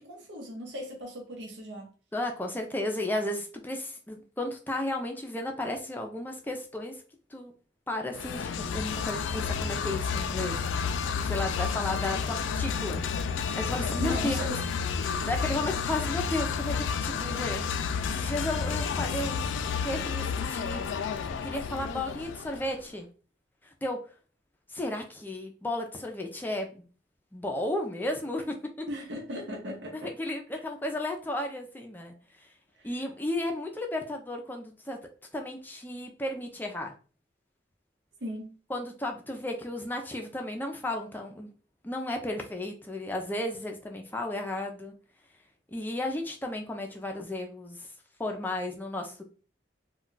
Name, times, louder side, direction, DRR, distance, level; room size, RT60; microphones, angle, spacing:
voice 1, 0.0-1.9 14.0-14.6 28.9-30.2 30.5-30.6 32.8-32.9 38.2-38.5, equal, 70° right, 0.7 m, -37 dB
voice 2, 2.1-7.0 7.3-7.5 7.9-13.0 13.4-14.4 15.2-17.7 18.1-19.4 19.8-20.9 21.4-23.1 23.8-24.0 24.7-26.8 27.3-28.7 29.9-32.1 32.8-35.0 35.3-36.9 38.7-41.5 41.8-44.9 45.7-47.9 48.2-49.2, left 1 dB, 10° left, 0.4 m, -34 dB
sound 1, 8.1-22.8, left 6 dB, 90° left, 0.3 m, -31 dB
2.3 x 2.2 x 3.8 m
head